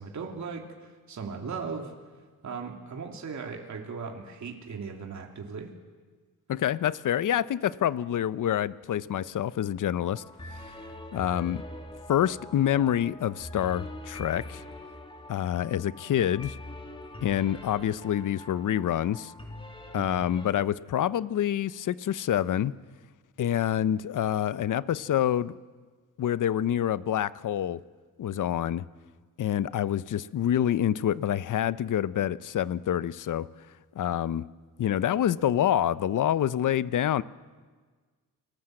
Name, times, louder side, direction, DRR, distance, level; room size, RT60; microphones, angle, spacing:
voice 1, 0.0-1.9 2.4-5.7 19.9-20.2, right 5 dB, 50° right, 2 dB, 2.9 m, -38 dB
voice 2, 6.5-10.2 10.5-10.7 11.1-11.6 12.1-14.6 15.3-16.6 17.2-19.3 19.9-22.7 23.4-25.6 26.2-27.8 28.2-28.8 29.4-33.5 34.0-34.5 34.8-37.2, left 10 dB, 55° left, 17 dB, 0.8 m, -27 dB
sound 1, 10.0-20.5, left 1 dB, 15° left, 2.9 m, -44 dB
29.0 x 20.0 x 7.8 m, 1.4 s
cardioid pair, 90°, 37 cm